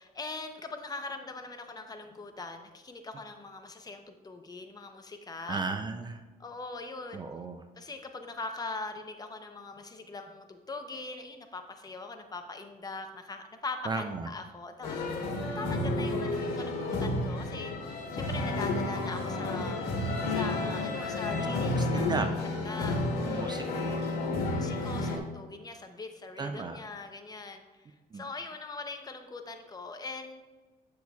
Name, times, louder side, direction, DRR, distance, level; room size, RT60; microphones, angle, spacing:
voice 1, 0.0-5.6 6.4-7.2 7.8-15.0 15.5-19.8 20.3-22.3 22.6-23.6 24.4-30.4, left 3 dB, 25° left, 6 dB, 0.7 m, -41 dB
voice 2, 5.5-6.2 7.1-7.6 13.9-14.3 21.5-22.3 23.2-23.9 24.4-24.5 26.4-26.8 28.1-28.3, right 4 dB, 25° right, 7 dB, 0.4 m, -35 dB
sound 1, 14.8-25.2, left 2 dB, 80° left, 1.5 m, -31 dB
8.4 x 6.2 x 2.3 m, 1.2 s
cardioid pair, 110°, 17 cm